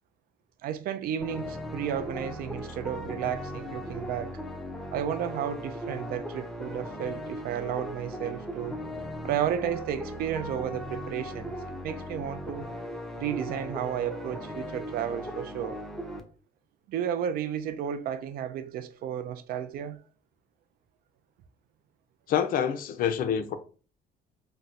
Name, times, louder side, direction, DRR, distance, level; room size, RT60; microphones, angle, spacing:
voice 1, 0.6-4.4 4.9-8.8 9.2-11.5 11.8-12.7 13.2-15.8 16.9-20.0, right 9 dB, 60° right, 0.4 m, -33 dB
sound 1, 1.2-16.2, equal, ahead, 0.4 m, -38 dB
voice 2, 22.3-23.5, left 8 dB, 55° left, 0.5 m, -27 dB
4.0 x 2.2 x 2.5 m
cardioid pair, 110°, 17 cm